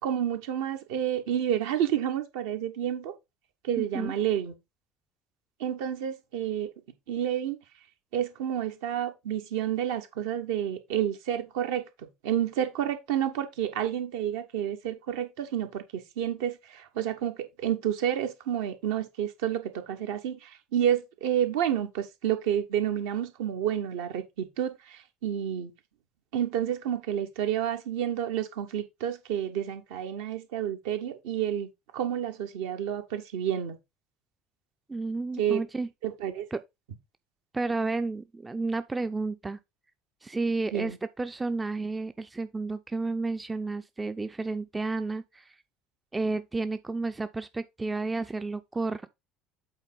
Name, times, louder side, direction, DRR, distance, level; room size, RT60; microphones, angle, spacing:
voice 1, 0.0-3.1 3.6-4.5 5.6-6.7 7.1-7.6 8.1-11.8 12.2-25.7 26.3-31.7 31.9-33.8 35.4-35.6 36.0-36.5 40.7-41.0, right 10 dB, 65° right, 1.3 m, -30 dB
voice 2, 3.8-4.1 34.9-35.9 36.5-36.6 37.5-39.6 40.2-45.5 46.1-49.1, right 3 dB, 15° right, 0.5 m, -31 dB
8.1 x 4.3 x 4.2 m
figure-of-eight pair, 65°, 0 cm